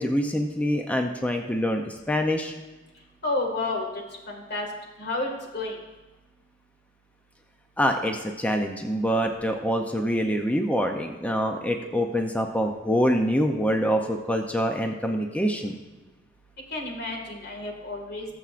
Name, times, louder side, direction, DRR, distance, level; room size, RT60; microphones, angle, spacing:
voice 1, 0.0-2.5 7.8-15.8, equal, 5° left, 4 dB, 0.5 m, -25 dB
voice 2, 3.2-3.9 4.3-4.7 5.0-5.8 16.7-18.3, left 2 dB, 55° left, 1 dB, 1.9 m, -30 dB
20.0 x 7.0 x 2.5 m, 1.1 s
head